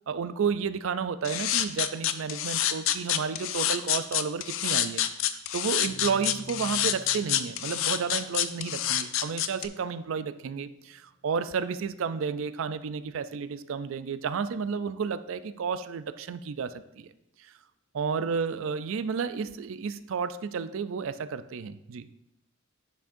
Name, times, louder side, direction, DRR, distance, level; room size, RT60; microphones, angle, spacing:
voice 1, 0.1-17.1 17.4-17.5 17.9-22.1, right 6 dB, 65° right, 12 dB, 0.4 m, -32 dB
sound 1, 1.2-9.7, left 11 dB, 65° left, 0.4 m, -27 dB
sound 2, 5.8-12.4, right 2 dB, 50° left, 2.3 m, -51 dB
10.0 x 6.1 x 2.6 m, 0.85 s
head